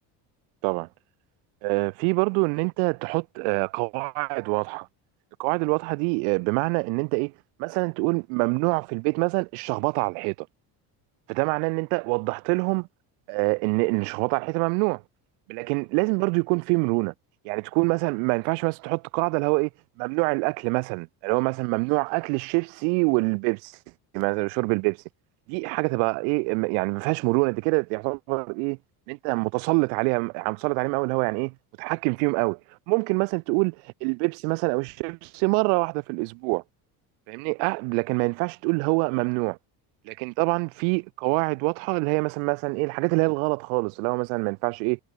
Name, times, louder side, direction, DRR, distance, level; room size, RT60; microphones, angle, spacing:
voice 1, 1.6-4.9 5.4-7.3 7.6-10.3 11.3-12.9 13.3-15.0 15.5-17.1 17.4-19.7 20.0-23.7 24.1-25.0 25.5-28.8 29.1-32.6 32.9-33.7 34.0-36.6 37.3-39.6 40.1-45.0, right 40 dB or more, 85° right, 3.1 m, -25 dB
supercardioid pair, 105°, 45 cm